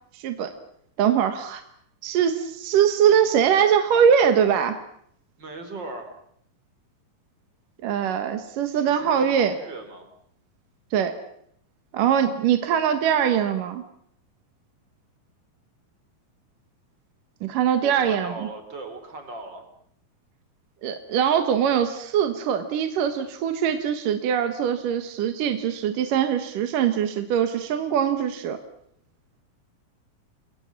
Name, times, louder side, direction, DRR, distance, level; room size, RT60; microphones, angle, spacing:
voice 1, 0.1-0.5 1.0-1.6 2.0-4.8 7.8-9.6 10.9-11.1 11.9-13.8 17.4-18.5 20.8-28.6, right 8 dB, 65° right, 8 dB, 2.9 m, -22 dB
voice 2, 5.4-6.1 8.7-10.1 17.8-19.6, right 2 dB, 30° right, 6 dB, 4.6 m, -38 dB
30.0 x 22.0 x 7.3 m, 0.70 s
omnidirectional pair, 4.4 m